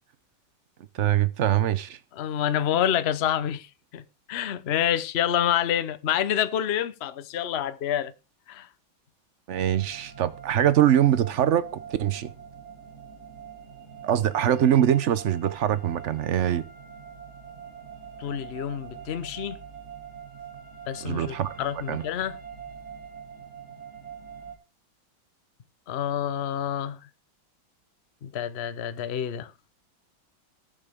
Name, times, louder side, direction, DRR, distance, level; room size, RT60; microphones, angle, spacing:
voice 1, 0.9-2.0 9.5-12.3 14.0-16.6 21.0-21.5 21.7-22.0, right 10 dB, 85° right, 0.6 m, -23 dB
voice 2, 2.2-3.7 3.9-4.0 4.3-8.1 8.5-8.7 18.2-19.6 20.9-22.4 25.9-27.0 28.2-29.5, left 10 dB, 55° left, 0.7 m, -27 dB
sound 1, 9.5-24.6, right 7 dB, 35° right, 2.4 m, -43 dB
19.0 x 7.4 x 3.6 m
omnidirectional pair, 2.2 m